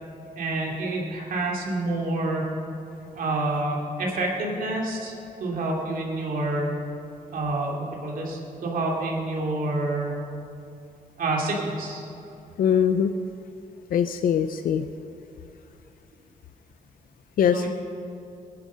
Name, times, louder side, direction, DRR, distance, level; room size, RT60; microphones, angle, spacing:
voice 1, 0.4-2.4 3.1-6.7 7.3-10.1 11.2-12.0 17.5-17.7, right 2 dB, 80° right, -2 dB, 2.9 m, -28 dB
voice 2, 12.6-13.1 13.9-14.8 17.4-17.7, left 8 dB, 85° left, 9 dB, 0.5 m, -22 dB
20.0 x 10.5 x 6.4 m, 2.7 s
wide cardioid pair, 165°, 14 cm